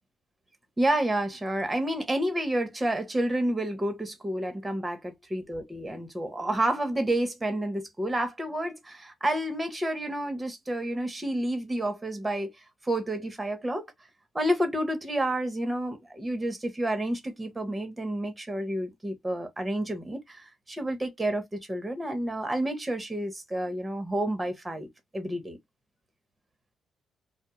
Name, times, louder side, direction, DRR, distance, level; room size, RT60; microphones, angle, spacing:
voice 1, 0.8-12.5 12.8-13.9 14.3-24.9 25.1-25.6, right 1 dB, 15° right, 0.8 m, -30 dB
2.3 x 2.0 x 3.0 m
cardioid pair, 90°, 0 cm